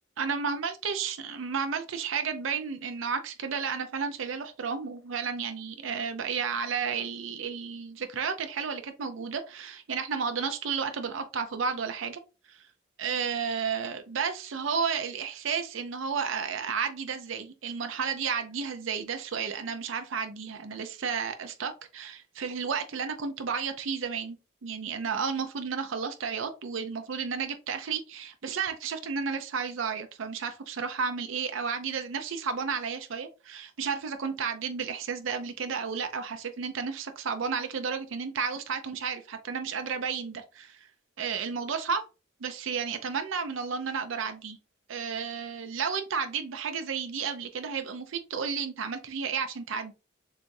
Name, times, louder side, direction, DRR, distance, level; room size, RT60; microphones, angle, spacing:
voice 1, 0.2-12.2 12.5-12.6 13.0-24.4 24.6-40.9 41.2-42.0 42.4-44.6 44.9-49.9, right 6 dB, 80° right, 7 dB, 0.5 m, -32 dB
6.8 x 2.4 x 2.6 m, 0.31 s
head